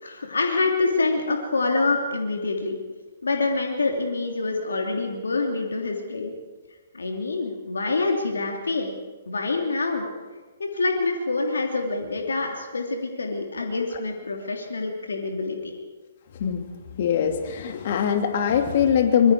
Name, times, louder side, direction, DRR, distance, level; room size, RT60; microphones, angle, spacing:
voice 1, 0.0-2.8 3.2-6.3 6.9-8.9 9.3-10.1 10.6-15.7, left 3 dB, 75° left, 2 dB, 2.9 m, -26 dB
voice 2, 17.0-19.3, left 8 dB, 50° left, 5 dB, 2.9 m, -22 dB
25.0 x 23.0 x 4.8 m, 1.3 s
figure-of-eight pair, 125°, 0 cm